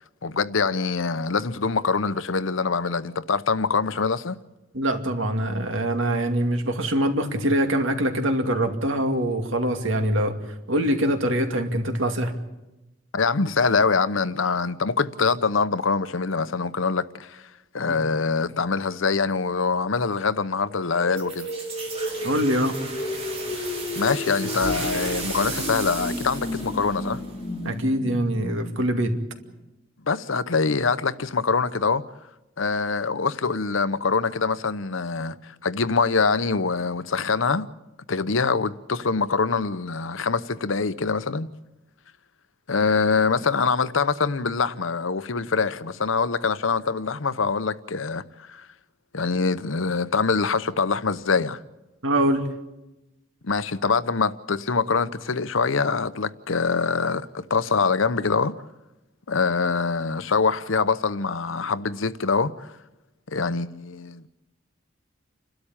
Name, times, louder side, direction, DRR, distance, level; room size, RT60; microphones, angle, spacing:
voice 1, 0.2-4.4 13.1-17.4 17.7-21.5 23.5-27.2 30.1-32.0 32.6-37.7 38.1-41.5 42.7-48.7 49.1-51.6 53.4-58.6 59.3-62.7 63.3-64.3, left 4 dB, 75° left, 0.9 m, -24 dB
voice 2, 4.7-10.4 10.7-12.4 17.9-18.0 22.2-22.8 27.6-29.1 52.0-52.4, right 1 dB, 75° right, 2.5 m, -24 dB
sound 1, 20.6-29.6, left 1 dB, 30° left, 1.7 m, -33 dB
sound 2, 21.2-27.8, right 3 dB, 30° right, 4.6 m, -35 dB
29.0 x 13.0 x 8.8 m
head